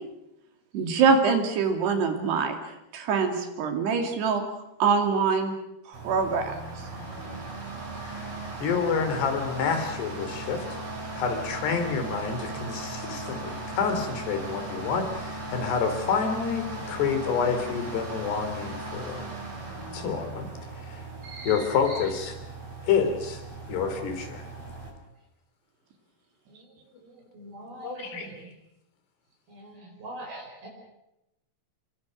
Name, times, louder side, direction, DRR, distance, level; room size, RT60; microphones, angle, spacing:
voice 1, 0.7-2.6 2.9-4.4 4.8-5.5 5.9-6.5, right 5 dB, 80° right, 5 dB, 4.7 m, -24 dB
sound 1, 5.9-24.9, right 2 dB, 30° right, 7.3 m, -38 dB
voice 2, 8.0-10.8 11.1-19.3 19.9-20.5 20.8-21.0 21.4-22.3 22.8-23.4 23.7-24.4 27.8-28.3, left 6 dB, 80° left, 7 dB, 5.2 m, -28 dB
voice 3, 21.2-22.1 26.5-26.7 27.0-28.5 29.5-30.7, right 2 dB, 65° right, 0 dB, 7.0 m, -42 dB
28.5 x 23.0 x 6.4 m, 0.88 s
omnidirectional pair, 4.7 m